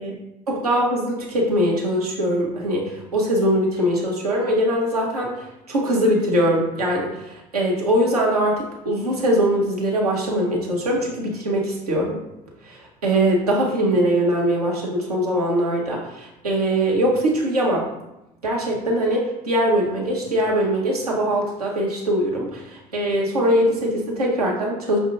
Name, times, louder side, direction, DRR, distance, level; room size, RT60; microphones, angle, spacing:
voice 1, 0.5-12.2 12.6-17.9 18.4-25.0, equal, 80° right, -2 dB, 0.8 m, -22 dB
5.8 x 2.5 x 2.5 m, 0.93 s
figure-of-eight pair, 60°, 19 cm